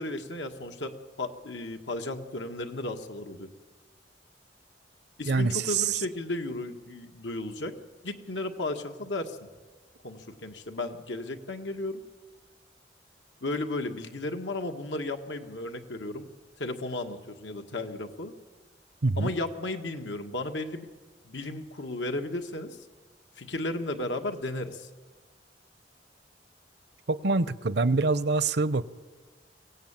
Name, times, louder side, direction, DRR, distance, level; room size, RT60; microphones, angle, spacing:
voice 1, 0.0-3.5 5.2-7.7 8.0-9.4 10.0-12.0 13.4-16.3 16.6-18.3 19.2-20.9 21.2-22.8 23.4-24.9, left 2 dB, 90° left, 1.8 m, -34 dB
voice 2, 5.3-6.0 19.0-19.3 27.1-28.8, right 3 dB, 65° right, 0.7 m, -25 dB
23.5 x 17.0 x 8.9 m
head